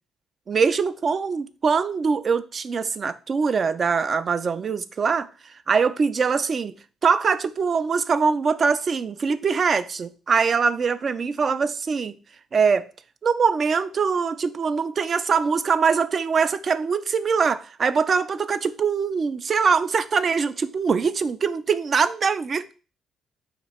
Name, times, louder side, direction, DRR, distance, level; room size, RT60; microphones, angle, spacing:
voice 1, 0.5-5.3 5.7-6.7 7.0-12.1 12.5-12.9 13.2-22.7, right 5 dB, 45° right, 0.3 m, -23 dB
3.4 x 2.9 x 4.2 m
cardioid pair, 90°, 0 cm